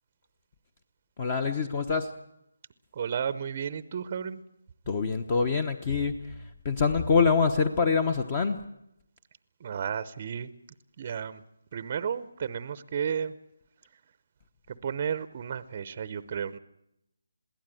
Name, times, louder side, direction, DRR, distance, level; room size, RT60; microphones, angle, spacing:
voice 1, 1.2-2.1 4.9-8.6, left 5 dB, 25° left, 10 dB, 1.0 m, -25 dB
voice 2, 2.9-4.4 9.6-10.5 11.0-11.4 11.7-13.3 14.7-16.6, right 7 dB, 30° right, 15 dB, 0.7 m, -33 dB
22.0 x 16.0 x 9.1 m, 0.80 s
hypercardioid pair, 170°, 0 cm